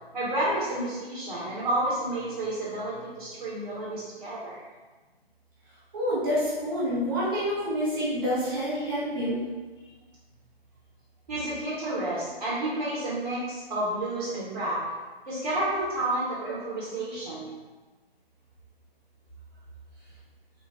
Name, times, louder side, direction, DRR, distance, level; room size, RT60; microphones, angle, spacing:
voice 1, 0.1-4.6 11.3-14.8 15.3-17.5, right 1 dB, 45° right, -8 dB, 1.3 m, -30 dB
voice 2, 5.9-9.4, equal, 20° right, -9 dB, 0.8 m, -27 dB
4.0 x 2.4 x 3.6 m, 1.3 s
figure-of-eight pair, 140°, 31 cm